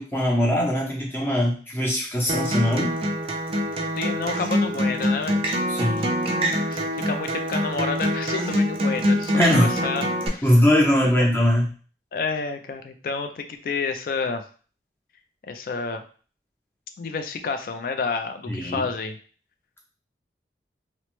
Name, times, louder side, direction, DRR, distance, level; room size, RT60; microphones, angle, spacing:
voice 1, 0.0-3.0 5.7-6.1 9.3-9.8 10.4-11.7 18.5-18.8, left 1 dB, 15° left, -3 dB, 0.7 m, -21 dB
Acoustic guitar, 2.3-10.3, equal, 30° right, 0.4 m, -25 dB
voice 2, 4.0-5.9 6.7-10.0 10.3-10.4 12.1-14.4 15.5-16.0 17.0-19.2, left 4 dB, 50° left, 7 dB, 0.3 m, -30 dB
3.0 x 2.0 x 3.0 m, 0.40 s
head